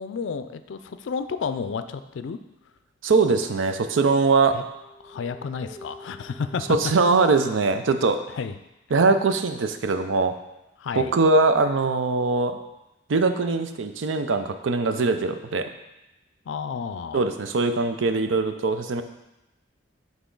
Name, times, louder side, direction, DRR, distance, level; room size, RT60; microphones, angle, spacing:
voice 1, 0.0-2.4 4.5-4.6 5.0-6.8 8.3-8.5 10.8-11.1 16.5-17.2, left 5 dB, 75° left, 10 dB, 0.4 m, -31 dB
voice 2, 3.0-4.6 6.7-8.2 8.9-10.3 11.0-12.6 13.1-15.7 17.1-19.0, right 3 dB, 85° right, 8 dB, 0.5 m, -21 dB
sound 1, 4.4-7.7, left 1 dB, 20° left, 0.7 m, -46 dB
8.2 x 3.6 x 3.8 m, 0.94 s
head